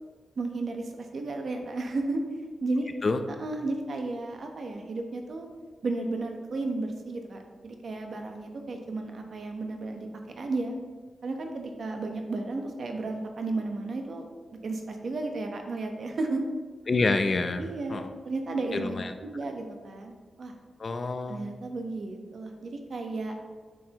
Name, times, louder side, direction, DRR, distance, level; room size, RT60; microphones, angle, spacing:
voice 1, 0.4-2.2 2.6-2.9 3.4-5.5 5.8-10.1 10.4-10.7 11.2-14.2 14.6-16.5 17.6-18.9 19.2-20.1 20.4-20.5 21.3-23.3, right 2 dB, 60° right, 4 dB, 1.0 m, -33 dB
voice 2, 16.9-18.1 18.7-19.1 20.8-21.5, left 3 dB, 45° left, 8 dB, 0.6 m, -28 dB
9.1 x 6.5 x 3.0 m, 1.4 s
cardioid pair, 90°, 0 cm